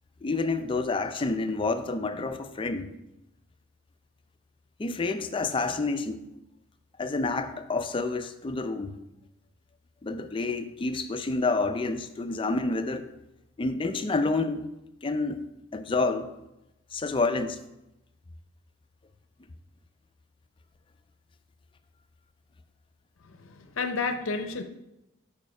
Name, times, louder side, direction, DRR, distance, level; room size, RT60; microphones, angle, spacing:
voice 1, 0.2-2.9 4.8-6.2 7.0-9.0 10.0-13.1 13.6-14.7 15.0-16.3 16.9-17.6, left 3 dB, 25° left, 9 dB, 0.4 m, -29 dB
voice 2, 23.2-24.6, left 4 dB, 70° left, 7 dB, 0.6 m, -31 dB
7.1 x 5.0 x 4.8 m, 0.91 s
head